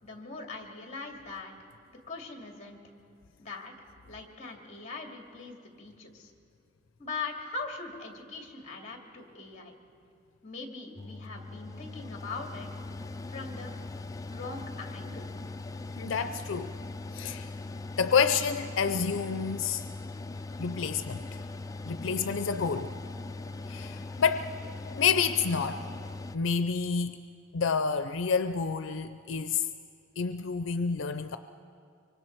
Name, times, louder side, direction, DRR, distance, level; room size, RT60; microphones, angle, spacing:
voice 1, 0.0-1.5 2.1-2.8 3.4-3.7 4.0-6.3 7.0-9.7 10.4-12.7 13.3-13.7 14.3-15.3, left 4 dB, 35° left, 2 dB, 2.3 m, -41 dB
Mechanical fan, 11.0-26.4, left 2 dB, 15° left, 0.4 m, -40 dB
voice 2, 16.0-16.7 17.1-17.5 18.0-19.8 20.6-21.2 21.8-22.9 23.7-24.5 25.0-25.8 26.3-27.2 27.5-29.6 30.2-31.4, left 6 dB, 80° left, 10 dB, 0.5 m, -28 dB
24.5 x 24.5 x 4.6 m, 2.4 s
head